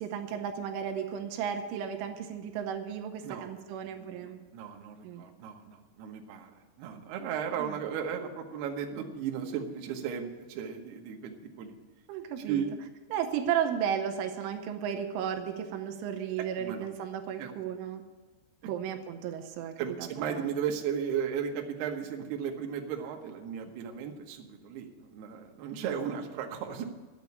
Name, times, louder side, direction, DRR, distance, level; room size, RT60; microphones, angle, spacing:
voice 1, 0.0-4.4 5.0-5.2 7.6-7.8 12.1-12.6 13.1-18.0 18.6-20.5, right 8 dB, 85° right, 5 dB, 3.3 m, -34 dB
voice 2, 3.2-3.6 3.9-11.8 12.5-12.8 16.6-16.9 17.4-17.5 19.8-26.8, right 8 dB, 70° right, 2 dB, 2.9 m, -35 dB
10.5 x 8.2 x 9.5 m, 1.3 s
omnidirectional pair, 5.5 m